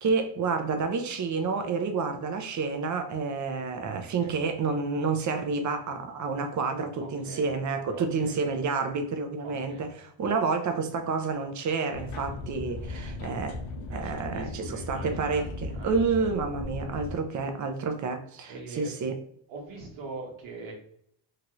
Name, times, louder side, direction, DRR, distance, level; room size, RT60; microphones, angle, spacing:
voice 1, 0.0-13.6 13.9-19.2, right 4 dB, 40° right, 0.6 m, -29 dB
voice 2, 7.0-7.5 7.9-8.3 9.4-9.9 13.9-15.4 15.7-16.3 18.5-18.9 19.5-20.7, right 3 dB, 75° right, 1.2 m, -42 dB
sound 1, 11.9-17.2, left 2 dB, 90° left, 0.7 m, -37 dB
2.9 x 2.4 x 3.0 m
cardioid pair, 90°, 47 cm